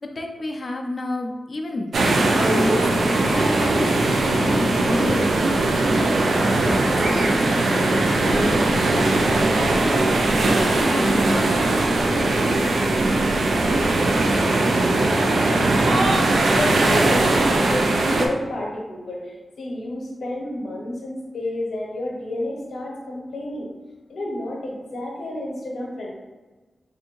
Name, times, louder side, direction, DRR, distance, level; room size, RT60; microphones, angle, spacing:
voice 1, 0.0-5.8 6.3-11.6, left 2 dB, 45° left, 3 dB, 0.4 m, -31 dB
sound 1, 1.9-18.3, right 2 dB, 85° right, 0.4 m, -20 dB
voice 2, 14.8-23.7 24.1-26.1, left 1 dB, 75° left, -2 dB, 0.8 m, -30 dB
3.5 x 2.6 x 2.9 m, 1.2 s
wide cardioid pair, 100°, 0 cm